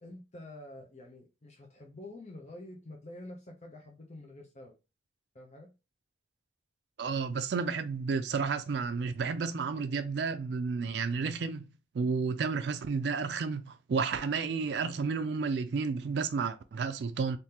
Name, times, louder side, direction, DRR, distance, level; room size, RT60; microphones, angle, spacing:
voice 1, 0.0-4.7 5.3-5.7, left 1 dB, 40° left, 0.6 m, -48 dB
voice 2, 7.0-11.7 11.9-17.4, right 5 dB, 70° right, 0.4 m, -31 dB
3.6 x 2.6 x 2.8 m
head